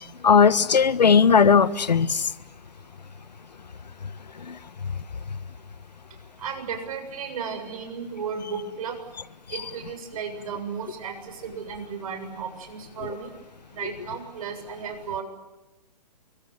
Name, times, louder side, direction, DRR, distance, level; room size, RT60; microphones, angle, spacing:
voice 1, 0.2-2.2 4.5-4.6, left 6 dB, 85° left, 16 dB, 1.4 m, -17 dB
voice 2, 6.4-9.0 9.5-13.3 13.7-15.2, right 6 dB, 55° right, 6 dB, 7.5 m, -34 dB
28.5 x 24.5 x 8.0 m, 1.1 s
hypercardioid pair, 135°, 21 cm